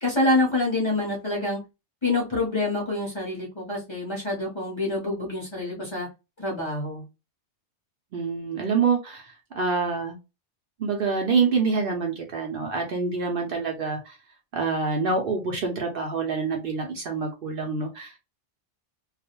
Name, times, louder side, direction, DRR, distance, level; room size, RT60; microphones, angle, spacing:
voice 1, 0.0-1.6 2.0-6.1 6.4-7.0, left 2 dB, 30° left, -5 dB, 0.7 m, -26 dB
voice 2, 8.1-10.2 10.8-14.2 14.5-18.1, right 4 dB, 60° right, 2 dB, 0.7 m, -26 dB
2.4 x 2.0 x 2.8 m, 0.27 s
omnidirectional pair, 1.2 m